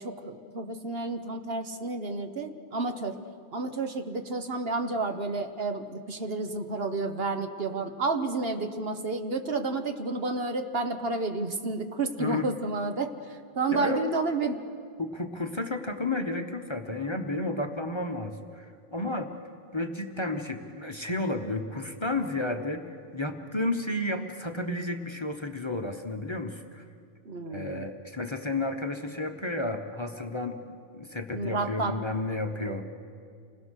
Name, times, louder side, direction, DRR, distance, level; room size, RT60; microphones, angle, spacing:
voice 1, 0.0-3.2 3.5-14.6 27.2-27.9 31.3-32.0 32.6-32.8, right 3 dB, 55° right, 6 dB, 1.3 m, -31 dB
voice 2, 13.7-14.0 15.0-19.3 19.7-26.8 27.5-32.8, left 2 dB, 25° left, 5 dB, 1.1 m, -32 dB
28.5 x 20.5 x 6.5 m, 2.3 s
omnidirectional pair, 1.2 m